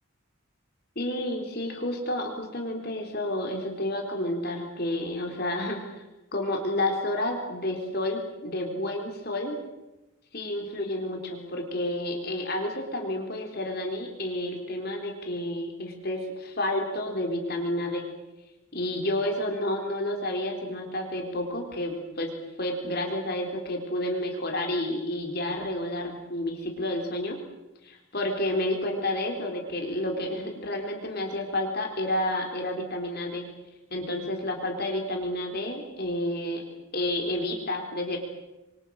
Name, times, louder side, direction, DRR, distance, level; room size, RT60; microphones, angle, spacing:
voice 1, 1.0-6.1 6.3-9.6 10.3-18.1 18.7-22.3 22.6-27.4 27.8-33.5 33.9-38.2, left 1 dB, 50° left, 2 dB, 4.1 m, -30 dB
27.5 x 24.5 x 6.5 m, 1.0 s
head